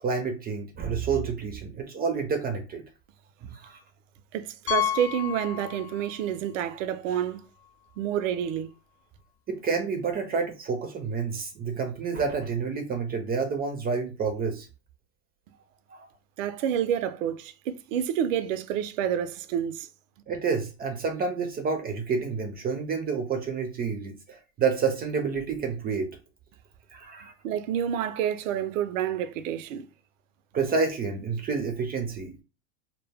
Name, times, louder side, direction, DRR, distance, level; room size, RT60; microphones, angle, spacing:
voice 1, 0.0-2.8 3.5-3.8 9.5-14.7 15.9-16.1 20.3-26.1 26.9-27.3 30.5-32.4, right 5 dB, 25° right, 0.4 m, -29 dB
voice 2, 4.3-7.4 8.0-8.7 16.4-19.9 27.4-29.9, right 9 dB, 80° right, 0.5 m, -29 dB
Piano, 4.7-6.3 6.5-6.7 7.3-7.4 7.6-7.7 9.8-9.9, left 11 dB, 40° left, 0.6 m, -31 dB
2.1 x 2.1 x 3.3 m
hypercardioid pair, 100°, 38 cm